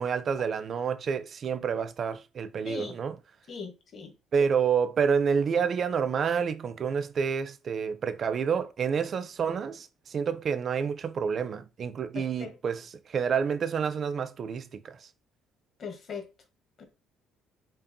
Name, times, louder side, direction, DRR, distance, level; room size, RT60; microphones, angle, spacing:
voice 1, 0.0-3.2 4.3-15.0, right 6 dB, 40° right, 0.4 m, -28 dB
voice 2, 3.5-4.1 12.1-12.5 15.8-16.2 16.8-16.9, left 5 dB, 45° left, 1.0 m, -39 dB
5.3 x 2.3 x 2.6 m
cardioid pair, 125°, 0 cm